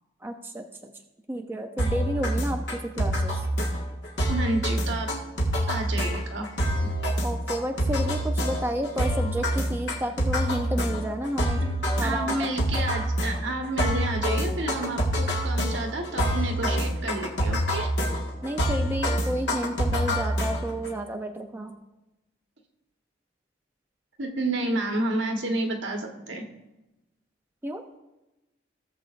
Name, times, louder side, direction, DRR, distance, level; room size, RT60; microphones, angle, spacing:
voice 1, 0.2-0.9 1.3-3.5 7.2-11.6 12.0-12.3 18.4-21.8 27.6-27.8, right 1 dB, 10° right, 3 dB, 0.5 m, -31 dB
sound 1, 1.8-20.9, equal, 60° left, 1.7 m, -26 dB
voice 2, 4.3-5.1 5.7-6.5 11.6-11.7 12.0-17.9 24.2-26.4, right 2 dB, 70° right, 2 dB, 1.3 m, -30 dB
17.0 x 7.3 x 2.5 m, 0.99 s
head